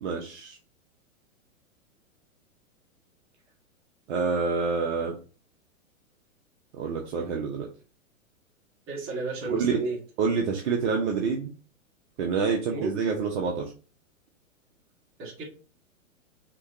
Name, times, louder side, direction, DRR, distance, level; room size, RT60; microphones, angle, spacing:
voice 1, 0.0-0.6 4.1-5.1 6.7-7.7 9.5-9.7 10.2-11.5 12.2-13.7, right 5 dB, 55° right, 1.1 m, -27 dB
voice 2, 8.9-10.0 12.7-12.9 15.2-15.4, right 3 dB, 30° right, 2.0 m, -32 dB
6.0 x 3.1 x 2.7 m
hypercardioid pair, 110°, 41 cm